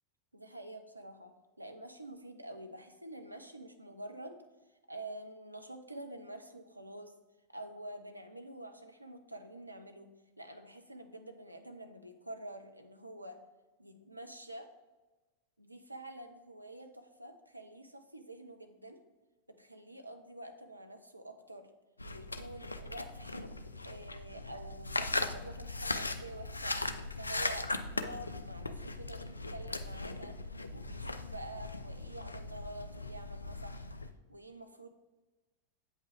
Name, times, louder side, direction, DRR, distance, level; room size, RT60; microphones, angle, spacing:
voice 1, 0.3-4.4 4.9-7.1 7.5-13.4 13.8-14.7 15.6-19.0 19.5-21.7 22.1-26.8 27.2-30.3 30.7-33.9 34.3-34.9, right 1 dB, 85° right, 6 dB, 0.7 m, -48 dB
sound 1, 22.0-34.1, left 2 dB, 80° left, 0.4 m, -39 dB
8.2 x 5.5 x 3.4 m, 1.1 s
figure-of-eight pair, 90°, 0 cm